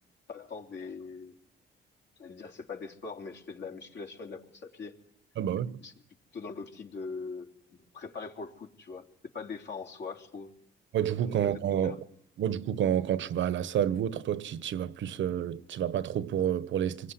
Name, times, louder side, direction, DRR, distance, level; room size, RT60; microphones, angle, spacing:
voice 1, 0.3-1.4 2.2-5.0 5.8-5.9 6.3-7.5 7.9-9.1 9.3-10.5 11.3-12.0, left 4 dB, 60° left, 3.6 m, -41 dB
voice 2, 5.4-5.8 10.9-12.0 12.4-17.1, right 10 dB, 70° right, 1.2 m, -29 dB
26.5 x 21.5 x 9.8 m
cardioid pair, 90°, 20 cm